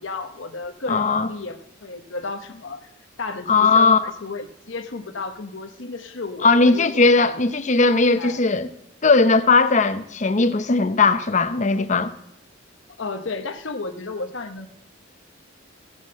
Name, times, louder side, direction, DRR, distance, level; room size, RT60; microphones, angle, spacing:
voice 1, 0.0-2.9 3.2-7.4 8.2-8.4 13.0-14.7, left 3 dB, 65° left, 1.0 m, -33 dB
voice 2, 0.9-1.3 3.5-4.0 6.4-8.7 9.0-12.1, left 3 dB, 35° left, 0.7 m, -18 dB
15.5 x 6.4 x 7.4 m
head